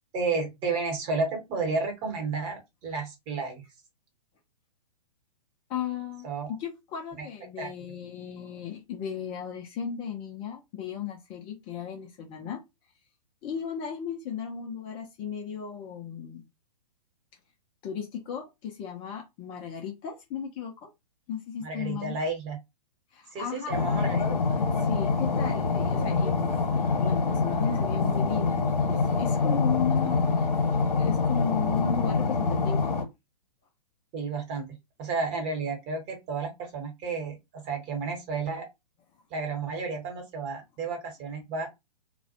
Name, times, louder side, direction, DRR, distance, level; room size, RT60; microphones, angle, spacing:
voice 1, 0.1-3.6 6.2-6.5 7.6-7.7 21.6-22.6 23.3-24.2 34.1-34.7 35.0-37.4 37.6-38.7 39.3-41.7, right 4 dB, 30° right, 1.0 m, -32 dB
voice 2, 5.7-12.6 13.4-16.5 17.8-20.9 21.3-22.2 23.1-30.2 31.0-32.9, left 8 dB, 25° left, 0.4 m, -36 dB
sound 1, 23.7-33.0, left 4 dB, 65° left, 0.9 m, -25 dB
2.3 x 2.1 x 2.7 m
figure-of-eight pair, 115°, 21 cm